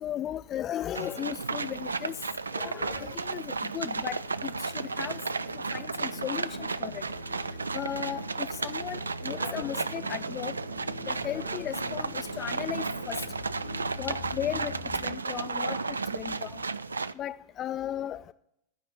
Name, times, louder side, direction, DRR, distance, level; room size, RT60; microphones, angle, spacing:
voice 1, 0.0-2.2 2.5-5.2 5.7-7.0 7.7-10.5 11.1-13.2 14.0-14.7 15.0-16.6 17.2-18.2, left 11 dB, 30° left, 0.3 m, -36 dB
sound 1, 0.9-17.1, right 4 dB, 75° right, 0.3 m, -34 dB
sound 2, 3.9-15.1, left 2 dB, 65° left, 0.8 m, -44 dB
12.5 x 5.1 x 8.4 m
figure-of-eight pair, 90°, 0 cm